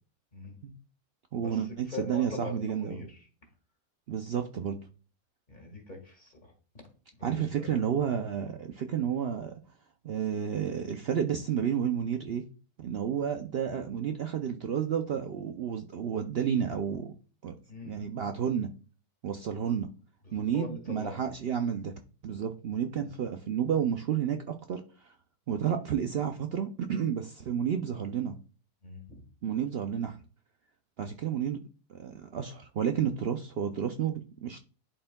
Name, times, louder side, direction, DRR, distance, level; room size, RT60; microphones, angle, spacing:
voice 1, 1.3-3.0 4.1-4.8 7.2-9.5 10.0-12.4 12.8-17.1 17.4-17.5 17.8-18.7 19.2-19.9 20.3-21.9 22.2-25.1 25.5-28.3 29.4-30.2 31.0-31.6 31.9-34.6, right 8 dB, 85° right, 0.5 m, -31 dB
voice 2, 1.9-3.2 5.5-6.5 7.2-7.9 17.7-18.0 20.3-21.2 23.0-23.1 28.8-29.2, left 3 dB, 30° left, 1.7 m, -42 dB
11.0 x 4.3 x 2.2 m
omnidirectional pair, 1.7 m